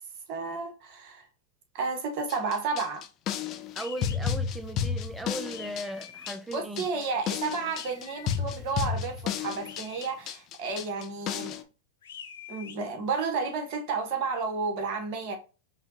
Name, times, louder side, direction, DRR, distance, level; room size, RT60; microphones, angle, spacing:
voice 1, 0.3-1.3 1.7-3.0 6.5-11.6 12.5-15.4, right 4 dB, 55° right, 1.4 m, -32 dB
sound 1, 2.3-11.6, left 8 dB, 40° left, 0.5 m, -32 dB
voice 2, 3.7-6.9, right 1 dB, 5° right, 0.7 m, -37 dB
sound 2, 3.8-4.2 5.5-6.4 7.7-8.4 9.6-10.1 12.0-12.8, left 8 dB, 80° left, 0.7 m, -45 dB
5.5 x 2.4 x 2.9 m
hypercardioid pair, 105°, 0 cm